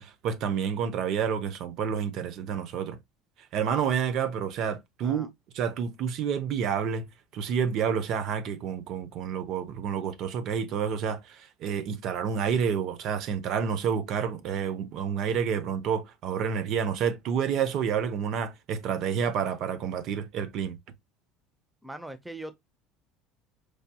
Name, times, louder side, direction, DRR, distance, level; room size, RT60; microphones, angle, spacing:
voice 1, 0.0-3.0 3.5-5.3 5.5-7.1 7.3-20.8, right 7 dB, 60° right, 0.7 m, -29 dB
voice 2, 21.8-22.6, right 1 dB, 5° right, 0.6 m, -41 dB
4.8 x 2.7 x 2.2 m
supercardioid pair, 100°, 0 cm